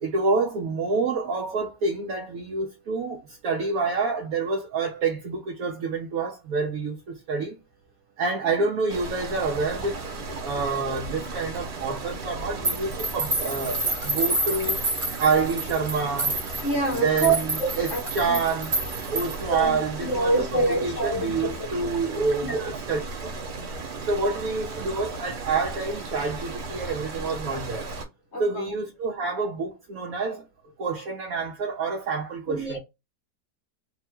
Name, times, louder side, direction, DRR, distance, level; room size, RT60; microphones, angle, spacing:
voice 1, 0.0-7.6 8.2-10.0 10.3-14.8 15.2-16.4 17.0-18.8 19.1-23.3 24.0-27.9 28.4-30.4 30.8-32.8, right 4 dB, 65° right, 1.1 m, -27 dB
sound 1, 8.9-28.0, right 3 dB, 80° right, 1.7 m, -36 dB
sound 2, 12.6-19.5, right 2 dB, 35° right, 1.4 m, -29 dB
voice 2, 16.6-17.3 17.6-18.4 19.5-21.5 22.4-22.7 28.3-28.7 32.5-32.8, right 2 dB, 55° left, 0.9 m, -26 dB
3.4 x 2.2 x 4.3 m
omnidirectional pair, 1.8 m